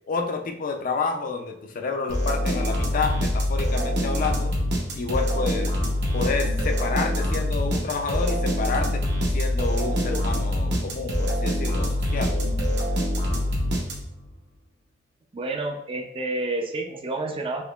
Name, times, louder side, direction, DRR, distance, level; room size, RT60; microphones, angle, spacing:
voice 1, 0.1-4.6 4.9-5.8 6.1-9.0 9.3-12.4, left 4 dB, 45° left, 5 dB, 0.4 m, -29 dB
sound 1, 2.1-14.3, left 1 dB, 65° right, 0.9 m, -25 dB
voice 2, 15.3-17.6, right 2 dB, 30° right, 3 dB, 0.4 m, -29 dB
3.6 x 2.8 x 2.3 m, 0.71 s
head